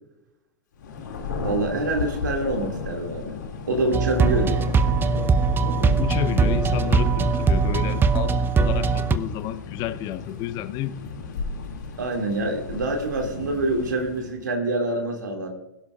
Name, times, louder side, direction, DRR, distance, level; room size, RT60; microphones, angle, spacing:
Thunder, 0.8-14.4, left 5 dB, 75° left, 2.3 m, -34 dB
voice 1, 1.4-3.3 3.7-4.7 12.0-15.5, right 2 dB, 85° right, 2.2 m, -26 dB
sound 1, 3.9-9.1, right 5 dB, 20° right, 0.8 m, -21 dB
voice 2, 6.0-11.0, left 13 dB, 45° left, 0.7 m, -31 dB
21.0 x 11.5 x 2.4 m
hypercardioid pair, 95°, 10 cm